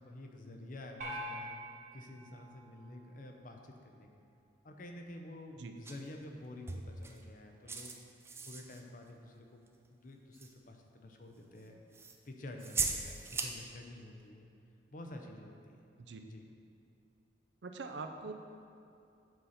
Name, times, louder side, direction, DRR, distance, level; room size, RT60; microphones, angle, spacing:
voice 1, 0.0-4.1 4.6-7.9 8.5-11.8 12.2-14.5 14.9-15.8 16.2-16.5, left 1 dB, 45° left, 3 dB, 0.7 m, -49 dB
sound 1, 1.0-3.5, equal, 45° right, 1.3 m, -45 dB
sound 2, 5.8-6.0 6.7-7.2 7.7-8.8 9.7-9.8 10.3-10.5 11.9-12.1 12.6-13.5, right 4 dB, 15° right, 0.4 m, -38 dB
voice 2, 17.6-18.3, right 3 dB, 80° right, 6 dB, 0.6 m, -43 dB
7.8 x 4.1 x 5.7 m, 2.7 s
head